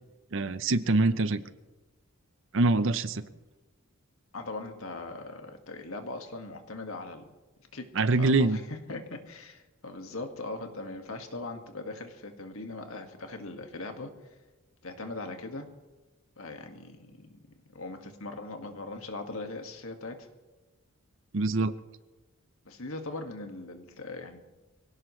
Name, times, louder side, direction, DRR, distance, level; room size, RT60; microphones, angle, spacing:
voice 1, 0.3-1.4 2.5-3.2 8.0-8.6 21.3-21.7, right 3 dB, 60° right, 13 dB, 0.7 m, -24 dB
voice 2, 4.3-7.3 7.7-7.9 8.2-14.1 14.8-15.7 16.4-17.4 17.7-20.2 22.7-24.4, left 2 dB, 75° left, 4 dB, 1.8 m, -40 dB
23.5 x 17.0 x 3.2 m, 1.1 s
head